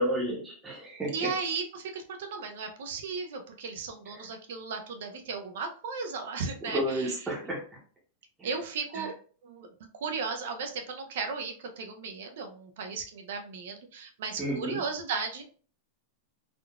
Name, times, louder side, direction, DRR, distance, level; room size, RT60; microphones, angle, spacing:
voice 1, 0.0-1.1 4.1-4.2 6.7-7.6 8.4-8.5 8.9-9.1 14.4-14.8, equal, 10° right, -5 dB, 0.8 m, -31 dB
voice 2, 1.1-7.3 8.4-9.1 9.4-9.7 10.0-15.4, right 5 dB, 70° right, 5 dB, 0.6 m, -35 dB
3.6 x 2.3 x 2.3 m, 0.42 s
supercardioid pair, 165°, 0 cm